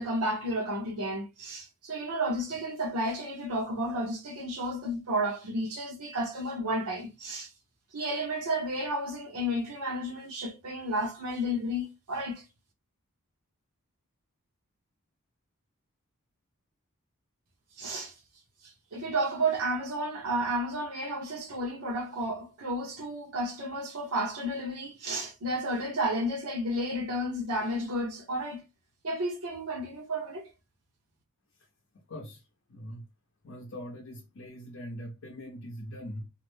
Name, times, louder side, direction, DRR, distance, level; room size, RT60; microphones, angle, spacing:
voice 1, 0.0-7.5 7.9-12.4 17.8-18.1 18.6-28.6 29.0-30.5, right 1 dB, 85° right, 0.7 m, -32 dB
voice 2, 31.9-33.1 33.4-36.3, equal, 60° left, 0.5 m, -42 dB
2.4 x 2.0 x 3.1 m
head